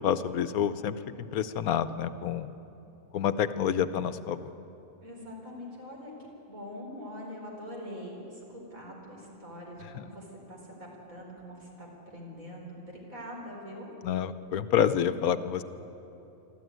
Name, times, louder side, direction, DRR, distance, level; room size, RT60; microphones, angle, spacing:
voice 1, 0.0-2.5 3.1-4.5 9.9-10.0 14.0-15.6, left 9 dB, 80° left, 13 dB, 1.2 m, -28 dB
voice 2, 5.0-12.8 13.1-13.9, equal, 65° right, -1 dB, 4.9 m, -43 dB
24.0 x 13.5 x 9.4 m, 2.9 s
omnidirectional pair, 1.6 m